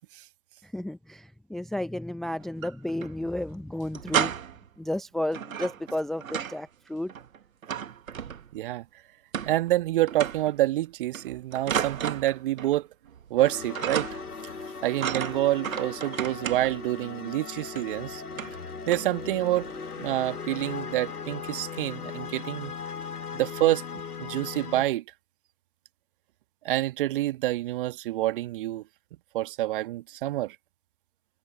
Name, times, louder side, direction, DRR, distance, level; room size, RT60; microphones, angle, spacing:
voice 1, 0.6-4.3 4.8-7.1, left 1 dB, ahead, 0.8 m, -32 dB
sound 1, 2.4-3.1 3.4-3.5 3.8-4.7 5.3-6.7 6.9-8.7 9.3-9.8 10.1-10.6 11.1-12.8 13.1-13.5 13.8-14.4 15.0-16.9 17.8-17.9 18.3-18.6 18.9-19.2 19.6-19.8, right 8 dB, 55° right, 1.5 m, -33 dB
voice 2, 8.5-8.8 9.5-12.9 13.3-14.2 14.8-18.2 18.9-19.7 20.0-22.7 23.3-23.8 24.2-25.0 26.6-28.8 29.3-30.5, right 15 dB, 35° right, 1.5 m, -27 dB
sound 2, 13.4-24.8, left 5 dB, 70° left, 2.4 m, -38 dB
figure-of-eight pair, 125°, 48 cm